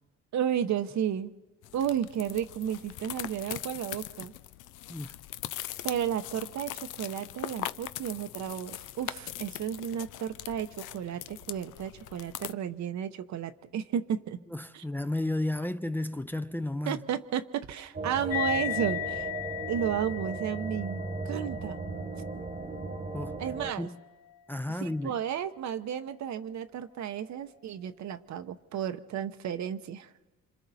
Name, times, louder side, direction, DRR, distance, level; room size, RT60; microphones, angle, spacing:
voice 1, 0.3-1.3 1.7-4.3 5.8-14.4 14.7-14.8 16.9-19.3 19.7-21.8 23.4-23.9 24.8-30.1, right 9 dB, 65° right, 0.9 m, -33 dB
sound 1, 1.6-12.5, left 14 dB, 90° left, 0.6 m, -41 dB
voice 2, 14.5-17.0 23.1-23.4 23.8-24.0 24.5-25.2, left 1 dB, 5° left, 0.6 m, -33 dB
sound 2, 17.9-23.7, right 3 dB, 30° right, 1.2 m, -36 dB
sound 3, 18.3-25.2, left 16 dB, 50° left, 3.1 m, -38 dB
27.0 x 26.0 x 4.2 m
cardioid pair, 90°, 30 cm